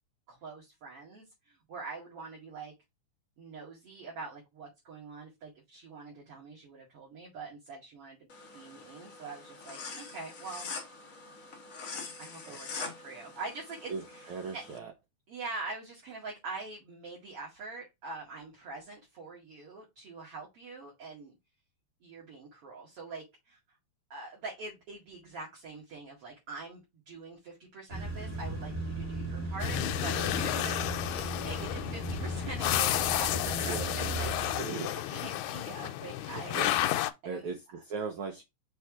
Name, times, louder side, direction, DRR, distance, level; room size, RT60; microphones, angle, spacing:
voice 1, 0.3-2.7 3.4-10.7 12.2-14.6 15.3-21.3 22.0-23.6 24.1-34.6 35.1-36.6 37.2-37.6, right 3 dB, 50° right, 2.8 m, -44 dB
sound 1, 8.3-14.8, left 4 dB, 65° left, 0.8 m, -44 dB
voice 2, 13.9-14.9 33.6-34.0 34.6-35.0 36.5-36.7 37.2-38.4, right 5 dB, 85° right, 1.1 m, -38 dB
sound 2, 27.9-34.6, right 1 dB, 10° right, 0.7 m, -37 dB
sound 3, 29.6-37.1, left 13 dB, 80° left, 1.9 m, -32 dB
5.9 x 3.3 x 4.7 m
omnidirectional pair, 3.4 m